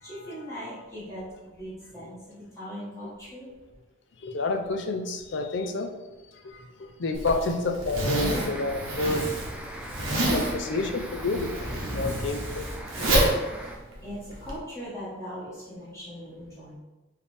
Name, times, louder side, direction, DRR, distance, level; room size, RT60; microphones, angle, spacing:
voice 1, 0.0-3.5 12.9-13.4 14.0-16.7, equal, 15° left, 1.3 m, -40 dB
voice 2, 4.2-5.9 6.4-9.2 10.3-11.5 11.9-12.7, left 3 dB, 55° left, 0.5 m, -29 dB
Zipper (clothing), 7.1-14.6, right 1 dB, 75° right, 1.1 m, -28 dB
sound 1, 8.1-13.8, equal, 5° right, 0.3 m, -40 dB
4.6 x 3.3 x 3.4 m
head